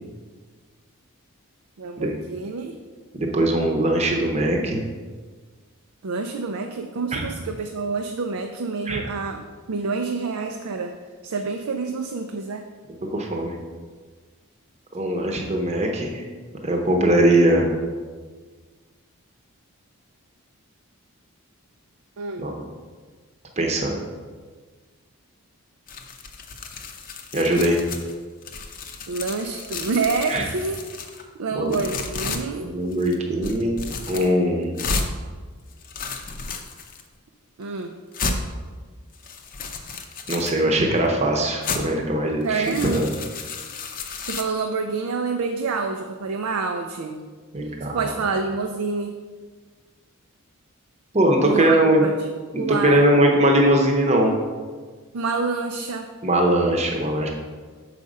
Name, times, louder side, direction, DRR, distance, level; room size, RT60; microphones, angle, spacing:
voice 1, 1.8-2.8 6.0-9.4 9.7-11.0 11.2-12.7 22.2-22.5 29.1-30.8 31.4-32.7 37.6-38.0 42.4-43.0 44.3-47.2 47.8-49.2 51.4-52.3 52.6-53.1 55.1-56.1, right 4 dB, 75° right, 5 dB, 0.5 m, -27 dB
voice 2, 3.1-4.8 7.1-7.2 8.9-9.0 13.1-13.5 14.9-16.2 16.6-17.7 22.4-22.5 23.6-24.0 27.3-27.8 30.3-30.4 31.6-31.7 32.6-33.8 34.1-34.7 40.3-43.1 47.5-48.0 51.1-52.0 52.5-54.3 56.2-57.3, right 1 dB, 30° right, 1 dB, 0.8 m, -20 dB
sound 1, 25.9-28.1 28.4-31.2 31.7-32.4 32.9-33.2 33.4-34.3 34.8-35.1 35.7-37.0 37.6-37.7 38.1-38.4 39.1-40.6 41.6-41.8 42.4-44.4, left 4 dB, 40° left, 0.6 m, -32 dB
6.8 x 4.9 x 5.3 m, 1.5 s
head